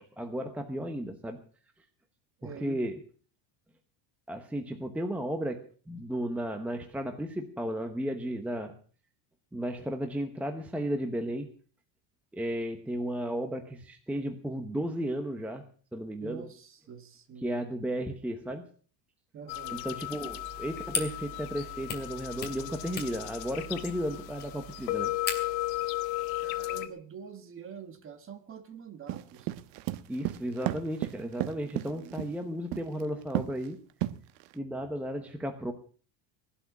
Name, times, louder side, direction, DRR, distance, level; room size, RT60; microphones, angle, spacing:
voice 1, 0.0-1.4 2.4-3.0 4.3-8.7 9.5-11.5 12.3-15.6 15.9-16.5 17.4-18.7 19.7-25.1 30.1-33.8 34.5-35.7, equal, 5° right, 6 dB, 0.9 m, -34 dB
voice 2, 2.4-2.8 16.2-17.6 19.3-19.8 26.4-29.5 31.2-32.2, right 7 dB, 25° right, 10 dB, 1.5 m, -46 dB
sound 1, 19.5-26.9, left 18 dB, 75° left, 1.9 m, -35 dB
sound 2, 20.3-25.7, left 4 dB, 20° left, 2.5 m, -40 dB
sound 3, 29.1-32.3 32.7-33.0 33.3-33.6 34.0-34.5, right 15 dB, 85° right, 1.2 m, -32 dB
18.0 x 12.0 x 6.0 m, 0.43 s
cardioid pair, 170°, 49 cm